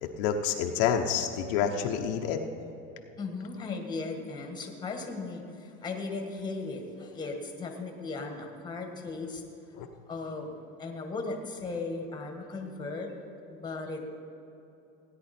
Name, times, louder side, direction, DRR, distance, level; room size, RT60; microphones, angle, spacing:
voice 1, 0.0-2.4 9.7-9.9, left 8 dB, 70° left, 3 dB, 0.9 m, -28 dB
voice 2, 3.2-9.4 10.1-10.5 10.8-13.1 13.5-14.0, left 3 dB, 15° left, 3 dB, 1.5 m, -37 dB
16.5 x 9.7 x 4.3 m, 2.9 s
supercardioid pair, 135°, 29 cm